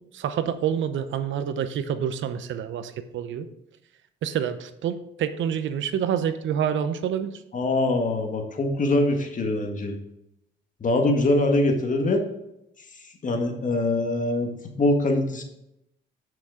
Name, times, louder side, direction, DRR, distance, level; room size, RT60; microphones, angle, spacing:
voice 1, 0.1-3.5 4.2-7.4, right 8 dB, 75° right, 11 dB, 0.8 m, -27 dB
voice 2, 7.5-9.9 10.8-12.2 13.2-14.5 14.8-15.4, left 2 dB, 40° left, 3 dB, 1.8 m, -23 dB
9.0 x 6.0 x 4.9 m, 0.83 s
cardioid pair, 90°, 20 cm